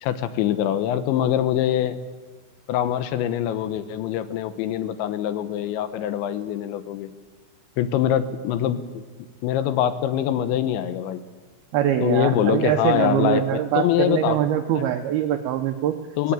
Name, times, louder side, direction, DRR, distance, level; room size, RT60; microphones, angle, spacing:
voice 1, 0.0-2.0 2.7-7.1 7.8-9.0 9.4-11.2 12.0-14.4 14.8-14.9 16.2-16.3, left 11 dB, 75° left, 11 dB, 3.2 m, -24 dB
voice 2, 11.7-16.0, right 11 dB, 85° right, 5 dB, 2.2 m, -23 dB
20.5 x 17.0 x 8.9 m, 1.4 s
omnidirectional pair, 5.5 m